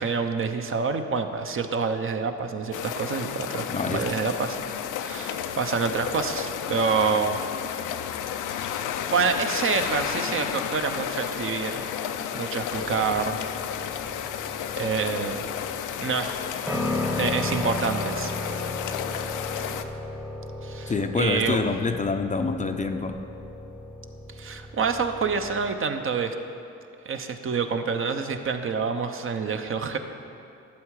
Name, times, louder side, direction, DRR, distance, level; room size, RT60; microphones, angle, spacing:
voice 1, 0.0-3.6 3.9-4.6 5.0-7.4 9.1-11.8 12.3-13.4 14.7-15.4 16.0-16.3 17.2-18.3 20.6-21.6 24.4-26.3 27.0-30.0, right 5 dB, 45° right, 6 dB, 0.8 m, -27 dB
sound 1, 2.7-19.8, left 9 dB, 85° left, 0.6 m, -32 dB
voice 2, 3.7-4.0 20.9-23.2, left 4 dB, 25° left, 6 dB, 0.5 m, -26 dB
sound 2, 12.7-25.7, left 2 dB, 5° right, 0.9 m, -35 dB
12.0 x 7.6 x 4.8 m, 2.6 s
cardioid pair, 90°, 30 cm